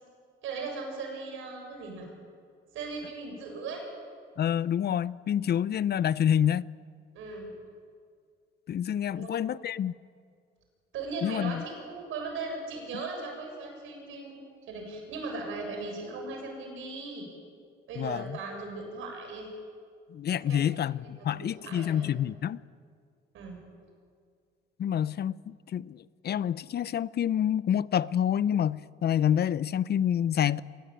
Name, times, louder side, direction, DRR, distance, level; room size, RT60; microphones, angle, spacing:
voice 1, 0.4-2.1 2.7-3.9 7.1-7.5 9.1-9.4 10.9-17.3 17.9-19.5 20.5-20.7 21.2-22.1 23.3-23.6, right 3 dB, 90° right, 7.4 m, -38 dB
voice 2, 4.4-6.7 8.7-9.9 11.2-11.6 18.0-18.4 20.1-22.6 24.8-30.6, left 9 dB, 55° left, 0.6 m, -28 dB
24.5 x 19.5 x 9.0 m
cardioid pair, 90°, 20 cm